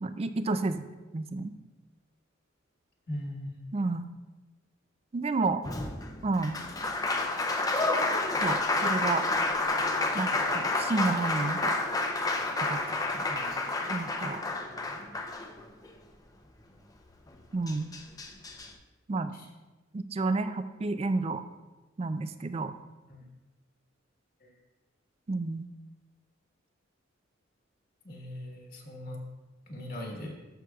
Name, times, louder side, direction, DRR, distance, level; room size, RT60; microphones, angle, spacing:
voice 1, 0.0-0.9 1.1-1.5 3.7-4.1 5.1-5.6 6.2-6.6 8.4-9.2 10.1-11.7 12.6-13.2 13.9-14.4 17.5-17.9 19.1-19.3 19.9-21.4 22.0-22.7 25.3-25.7, right 3 dB, 30° right, 10 dB, 0.4 m, -30 dB
voice 2, 3.1-3.6 13.3-13.5 19.3-19.5 23.1-23.3 24.4-24.6 28.0-29.2 29.7-30.3, left 1 dB, 50° left, 0 dB, 1.4 m, -40 dB
Applause, 5.6-15.9 17.3-17.4 17.7-18.7, left 2 dB, 20° left, 0.6 m, -30 dB
13.5 x 6.2 x 2.3 m, 1.2 s
head